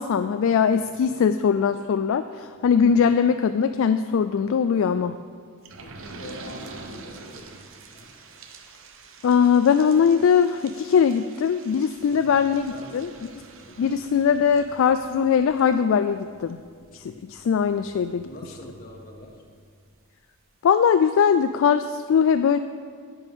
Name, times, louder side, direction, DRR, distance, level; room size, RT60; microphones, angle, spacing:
voice 1, 0.0-5.2 9.2-13.1 13.8-16.6 16.9-18.3 20.6-22.6, left 7 dB, 60° left, 10 dB, 0.3 m, -21 dB
voice 2, 0.8-1.1 2.9-3.1 5.8-7.5 7.7-8.1 12.1-12.4 12.7-13.1 13.6-13.9 18.2-19.4, left 1 dB, 40° left, 1 dB, 1.4 m, -44 dB
sound 1, 5.6-19.9 20.4-20.5 20.7-20.8, right 3 dB, 60° right, 0.9 m, -46 dB
10.5 x 8.6 x 4.9 m, 2.1 s
head